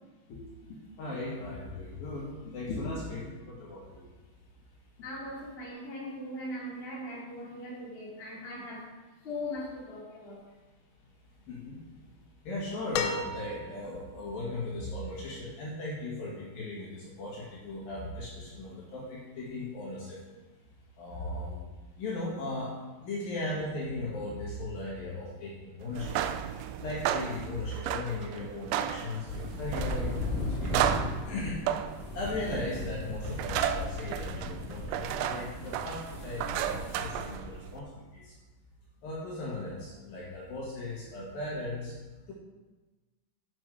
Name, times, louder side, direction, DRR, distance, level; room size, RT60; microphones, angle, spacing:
voice 1, 0.7-4.1 11.5-11.8 12.4-20.2 21.0-21.6 22.0-22.7 23.0-26.2 26.8-30.9 31.3-31.6 32.1-38.3 39.0-42.0 42.3-42.4, left 2 dB, 60° left, -6 dB, 2.9 m, -37 dB
voice 2, 5.0-8.9 9.2-10.5, left 1 dB, 20° left, -6 dB, 1.5 m, -39 dB
sound 1, 12.9-14.0 15.5-15.6, left 5 dB, 80° left, 3.3 m, -34 dB
sound 2, 25.9-37.8, right 10 dB, 85° right, 3.2 m, -34 dB
sound 3, 29.3-37.4, left 1 dB, 35° left, 3.1 m, -36 dB
9.6 x 6.6 x 4.9 m, 1.2 s
omnidirectional pair, 5.8 m